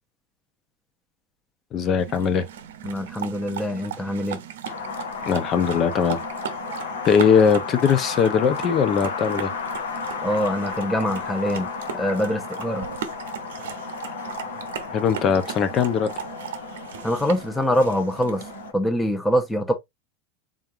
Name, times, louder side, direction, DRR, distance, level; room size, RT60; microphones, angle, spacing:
voice 1, 1.7-2.5 5.3-6.2 7.0-9.5 14.9-16.1, left 7 dB, 40° left, 0.7 m, -20 dB
sound 1, 2.0-18.7, right 9 dB, 80° right, 0.7 m, -37 dB
voice 2, 2.8-4.4 10.2-11.7 11.9-12.9 17.0-18.4 18.7-19.7, equal, 10° left, 0.8 m, -24 dB
Wind, 4.6-18.7, left 6 dB, 80° left, 0.9 m, -34 dB
3.7 x 3.4 x 2.7 m
hypercardioid pair, 105°, 0 cm